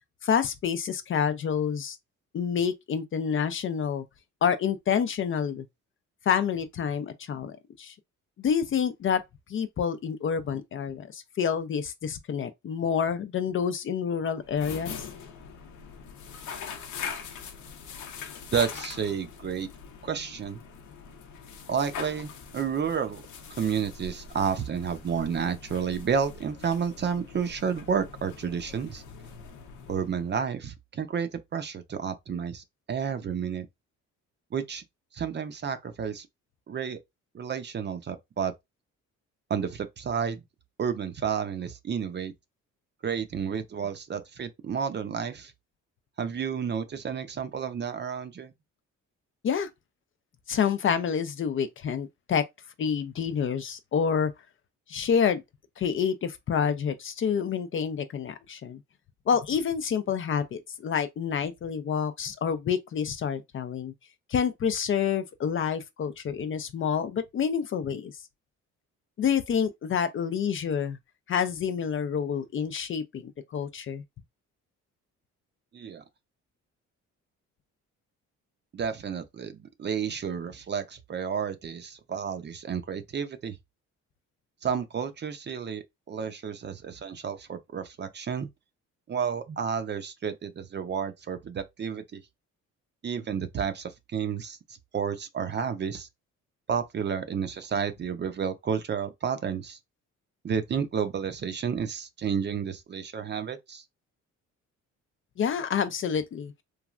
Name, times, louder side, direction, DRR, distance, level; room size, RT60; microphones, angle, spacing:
voice 1, 0.2-2.0 2.3-4.0 4.4-5.6 6.3-7.9 8.4-9.2 9.5-15.1 49.4-49.7 50.5-52.5 52.8-54.3 54.9-55.4 55.8-58.8 59.3-63.9 64.3-68.1 69.2-71.0 71.3-73.2 73.5-74.0 105.4-106.5, left 7 dB, 45° left, 0.4 m, -28 dB
sound 1, 14.4-30.5, left 6 dB, 85° left, 0.7 m, -42 dB
voice 2, 18.5-19.7 20.0-20.6 21.7-23.2 23.6-29.0 29.9-33.7 34.5-34.8 35.1-36.3 36.7-37.0 37.3-38.5 39.5-40.4 40.8-42.3 43.0-45.5 46.2-48.5 75.7-76.0 78.7-83.6 84.6-88.5 89.1-92.2 93.0-94.6 94.9-96.1 96.7-99.8 100.4-103.8, right 7 dB, 35° right, 0.5 m, -31 dB
3.1 x 2.3 x 2.4 m
cardioid pair, 90°, 30 cm